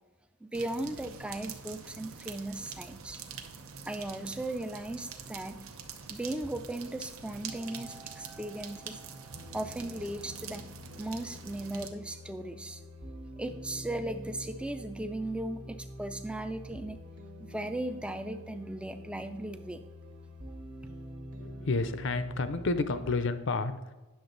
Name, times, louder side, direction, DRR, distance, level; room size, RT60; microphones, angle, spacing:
voice 1, 0.4-3.2 3.9-5.6 6.1-9.0 9.5-10.7 11.0-12.8 13.4-17.0 17.4-19.8, right 1 dB, 5° right, 9 dB, 0.4 m, -37 dB
sound 1, 0.5-11.9, right 6 dB, 70° right, 0.8 m, -45 dB
sound 2, 7.4-23.1, equal, 90° right, 1.7 m, -47 dB
voice 2, 21.4-23.9, left 3 dB, 55° left, 12 dB, 0.6 m, -30 dB
9.5 x 6.5 x 3.9 m, 1.1 s
head